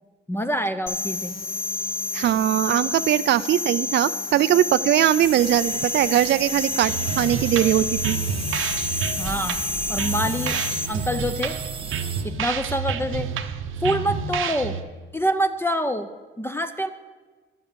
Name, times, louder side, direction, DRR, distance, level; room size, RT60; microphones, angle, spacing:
voice 1, 0.3-1.3 9.2-9.6 9.9-10.6 10.9-11.5 12.2-13.3 13.8-14.8 15.1-16.1 16.4-16.9, equal, 10° left, 9 dB, 0.6 m, -26 dB
sound 1, 0.9-10.9, left 3 dB, 45° left, 0.9 m, -30 dB
voice 2, 2.1-8.2, right 12 dB, 60° right, 14 dB, 0.4 m, -21 dB
sound 2, 5.2-12.2, right 5 dB, 25° right, 0.9 m, -35 dB
sound 3, 6.8-14.8, right 7 dB, 80° right, 0.8 m, -29 dB
11.5 x 7.9 x 6.8 m, 1.4 s
cardioid pair, 85°, 21 cm